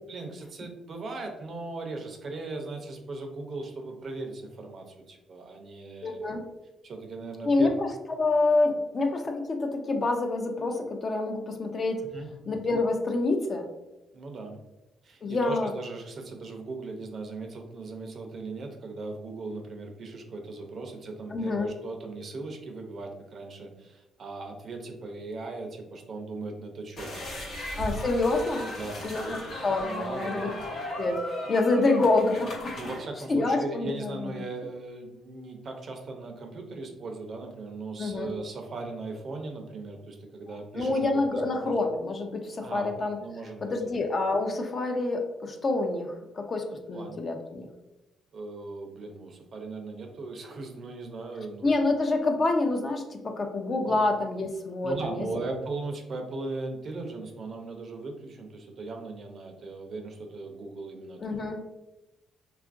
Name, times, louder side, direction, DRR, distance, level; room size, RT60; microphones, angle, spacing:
voice 1, 0.1-6.2 6.8-7.7 12.1-12.3 14.1-14.6 15.0-27.8 28.6-29.4 29.8-30.6 32.7-41.0 41.3-41.7 42.6-43.8 46.9-47.2 48.3-51.8 53.9-54.0 54.8-61.2, right 3 dB, 50° right, 3 dB, 0.5 m, -38 dB
voice 2, 6.0-6.4 7.4-7.9 8.2-12.0 12.5-13.6 15.2-15.7 21.3-21.7 27.8-28.7 29.0-30.5 31.0-32.7 33.3-34.3 38.0-38.3 40.5-43.2 43.6-47.7 51.6-55.3 61.2-61.6, left 2 dB, 40° left, 4 dB, 0.4 m, -27 dB
sound 1, 27.0-32.9, left 1 dB, 70° left, 0.9 m, -36 dB
2.8 x 2.4 x 2.4 m, 0.99 s
cardioid pair, 90°, 0 cm